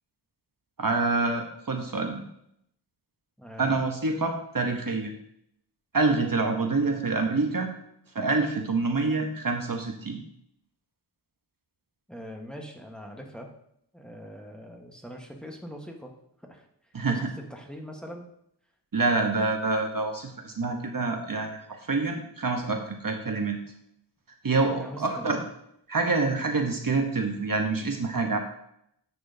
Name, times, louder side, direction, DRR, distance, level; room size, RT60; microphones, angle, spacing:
voice 1, 0.8-2.2 3.6-5.1 5.9-7.7 8.1-10.2 16.9-17.3 18.9-23.6 24.4-25.4 25.9-28.4, right 3 dB, 50° right, 3 dB, 1.0 m, -26 dB
voice 2, 12.1-13.5 13.9-16.1 16.4-18.3 24.8-25.4, equal, ahead, 1 dB, 1.2 m, -42 dB
9.6 x 6.1 x 2.7 m, 0.74 s
wide cardioid pair, 60°, 42 cm